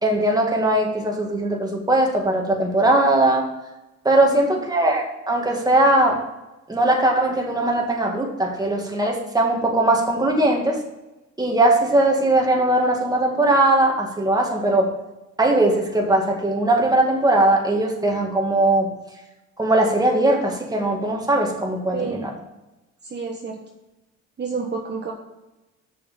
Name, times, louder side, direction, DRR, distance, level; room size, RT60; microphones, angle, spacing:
voice 1, 0.0-3.5 4.0-6.2 6.7-10.8 11.4-14.9 15.4-18.9 19.6-22.3, right 1 dB, 15° right, 0 dB, 2.1 m, -20 dB
voice 2, 21.9-22.3 23.0-23.6 24.4-25.1, right 5 dB, 35° right, 0 dB, 1.2 m, -29 dB
6.7 x 6.5 x 6.8 m, 1.0 s
cardioid pair, 90°, 30 cm